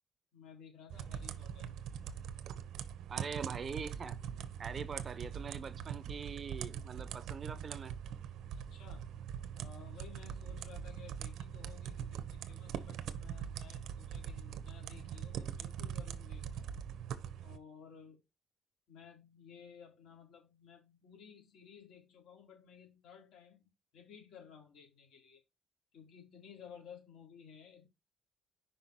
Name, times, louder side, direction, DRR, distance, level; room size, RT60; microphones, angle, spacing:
voice 1, 0.3-1.7 4.9-5.0 8.5-9.1 9.5-16.7 17.4-18.2 18.9-25.4 25.9-27.9, left 7 dB, 75° left, 3.8 m, -56 dB
sound 1, 0.9-17.6, right 8 dB, 70° right, 0.8 m, -42 dB
voice 2, 3.1-4.2 4.6-7.9, right 6 dB, 35° right, 0.6 m, -43 dB
5.6 x 5.2 x 4.1 m
cardioid pair, 150°, 0 cm